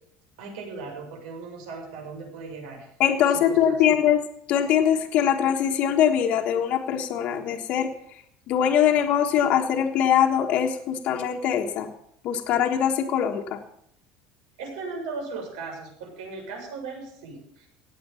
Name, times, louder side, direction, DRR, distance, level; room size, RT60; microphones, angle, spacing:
voice 1, 0.4-2.9 3.3-4.0 14.6-17.7, right 4 dB, 85° right, 0 dB, 7.3 m, -37 dB
voice 2, 3.0-4.2 4.5-7.9 8.5-11.9 12.2-13.6, left 9 dB, 40° left, 3 dB, 1.4 m, -22 dB
17.5 x 8.3 x 7.1 m, 0.71 s
cardioid pair, 180°, 3 cm